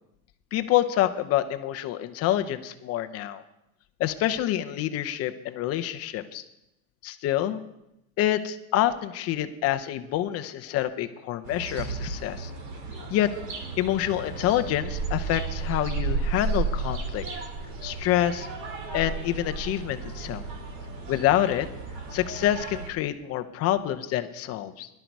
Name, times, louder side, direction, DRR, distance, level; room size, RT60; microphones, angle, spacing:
voice 1, 0.5-3.4 4.0-6.4 7.0-7.6 8.2-12.5 13.1-13.3 13.8-17.2 17.8-18.5 18.9-20.4 21.1-21.7 22.1-24.9, left 12 dB, 35° left, 9 dB, 0.8 m, -27 dB
sound 1, 11.4-22.9, right 4 dB, 45° right, 2.4 m, -33 dB
17.0 x 12.0 x 4.7 m, 0.85 s
supercardioid pair, 145°, 43 cm